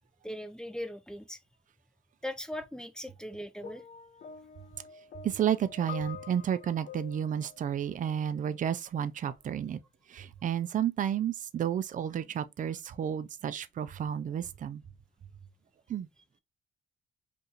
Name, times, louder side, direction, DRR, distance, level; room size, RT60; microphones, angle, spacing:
voice 1, 0.2-1.4 2.2-3.8, left 1 dB, 5° left, 0.6 m, -39 dB
sound 1, 3.6-8.7 9.6-9.8, left 7 dB, 55° left, 0.5 m, -47 dB
voice 2, 5.2-9.8 10.1-14.8 15.9-16.1, right 9 dB, 40° right, 0.4 m, -31 dB
2.7 x 2.5 x 3.8 m
cardioid pair, 90°, 20 cm